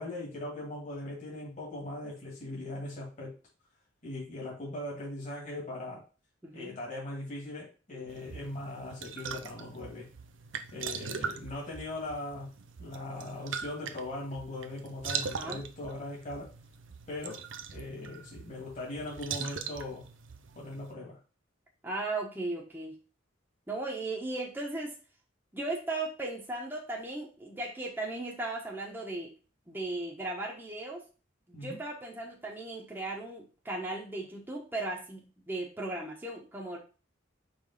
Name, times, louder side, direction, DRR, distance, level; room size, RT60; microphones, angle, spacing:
voice 1, 0.0-3.3 4.0-6.0 6.5-10.1 10.7-12.5 12.8-16.5 17.1-17.4 17.7-20.0 20.6-21.2 31.5-31.8, left 2 dB, 40° left, -3 dB, 2.1 m, -40 dB
voice 2, 6.4-6.8 7.9-8.0 15.2-15.6 21.8-22.9 23.7-24.9 25.5-29.3 29.7-31.0 31.6-36.8, right 2 dB, 10° right, -3 dB, 1.2 m, -37 dB
sound 1, 8.1-20.9, right 6 dB, 70° right, 0.6 m, -41 dB
5.1 x 3.5 x 5.4 m, 0.34 s
head